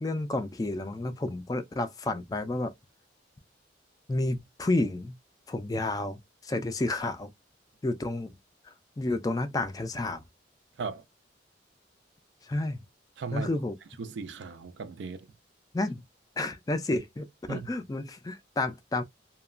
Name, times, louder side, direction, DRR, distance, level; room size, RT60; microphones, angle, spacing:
voice 1, 0.0-2.7 4.1-5.2 5.5-7.3 7.8-8.3 8.6-10.2 12.4-12.8 13.3-13.7 15.7-16.0 16.4-19.0, left 2 dB, 20° left, 0.3 m, -31 dB
voice 2, 13.2-13.5 14.0-15.3 17.5-17.7, right 5 dB, 70° right, 0.4 m, -36 dB
2.8 x 2.2 x 2.4 m
head